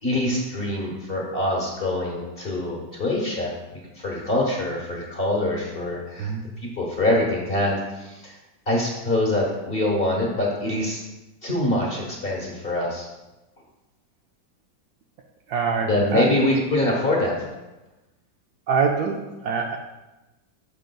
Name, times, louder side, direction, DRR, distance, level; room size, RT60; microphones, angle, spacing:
voice 1, 0.0-6.3 6.6-8.4 8.7-11.0 11.4-13.1 15.8-17.5, left 1 dB, 35° left, -2 dB, 1.3 m, -24 dB
voice 2, 15.5-16.3 18.7-19.8, right 5 dB, 70° right, 1 dB, 1.0 m, -24 dB
12.5 x 5.2 x 2.3 m, 1.0 s
omnidirectional pair, 2.1 m